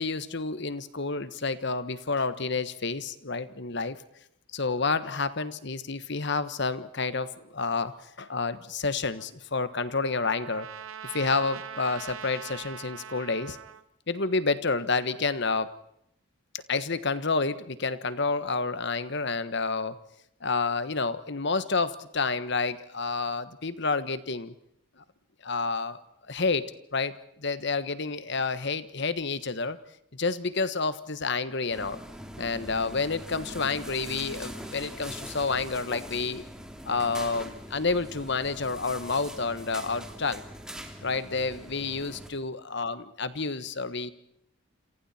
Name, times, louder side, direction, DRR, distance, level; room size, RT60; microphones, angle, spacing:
voice 1, 0.0-4.0 4.5-10.7 11.1-13.6 14.1-15.7 16.5-20.0 20.4-24.5 25.0-25.1 25.4-26.0 26.3-27.1 27.4-29.8 30.1-32.0 32.4-36.4 36.8-40.4 41.0-44.1, left 4 dB, 55° left, 13 dB, 1.4 m, -29 dB
Trumpet, 9.2-13.8, right 9 dB, 80° right, 1.4 m, -42 dB
sound 1, 31.7-42.3, equal, 5° right, 2.7 m, -42 dB
28.0 x 27.0 x 4.4 m, 0.76 s
head